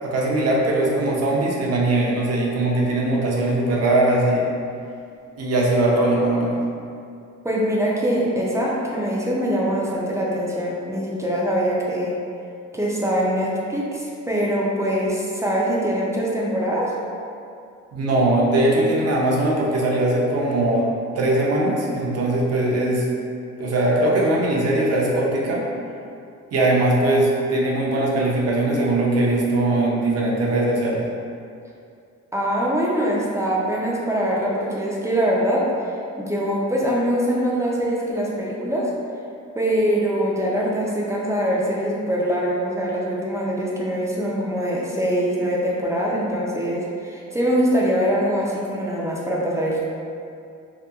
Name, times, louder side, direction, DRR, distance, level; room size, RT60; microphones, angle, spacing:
voice 1, 0.0-4.5 5.4-6.6 17.9-20.8 21.2-23.1 23.6-25.6 26.5-31.1, right 1 dB, 55° right, -3 dB, 0.6 m, -20 dB
voice 2, 7.4-12.2 12.7-16.9 32.3-38.9 39.6-49.8, equal, 10° right, -5 dB, 0.4 m, -23 dB
2.8 x 2.2 x 2.3 m, 2.5 s
cardioid pair, 90°, 30 cm